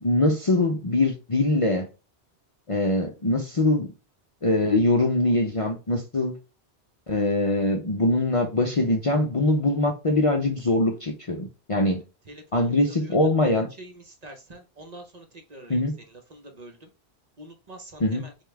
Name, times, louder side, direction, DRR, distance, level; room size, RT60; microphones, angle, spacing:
voice 1, 0.0-1.9 2.7-3.9 4.4-6.3 7.1-12.0 12.5-13.7 15.7-16.0 18.0-18.2, left 2 dB, 40° left, 0.5 m, -23 dB
voice 2, 14.2-15.2 15.5-15.8 16.3-16.8 17.4-18.0, right 1 dB, 45° right, 0.8 m, -44 dB
5.2 x 2.4 x 3.3 m
omnidirectional pair, 1.1 m